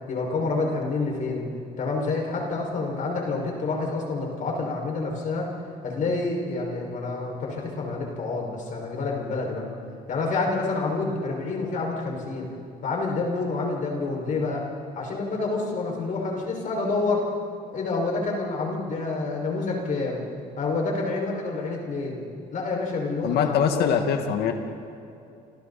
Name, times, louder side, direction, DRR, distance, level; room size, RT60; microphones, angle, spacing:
voice 1, 0.1-1.5 1.8-5.5 5.8-9.7 10.1-12.5 12.8-14.7 14.9-17.3 17.7-20.2 20.6-22.2 22.5-24.3, left 3 dB, 50° left, -1 dB, 5.9 m, -28 dB
voice 2, 23.2-24.5, left 8 dB, 75° left, 5 dB, 2.0 m, -23 dB
29.5 x 27.0 x 4.3 m, 2.7 s
cardioid pair, 110°, 17 cm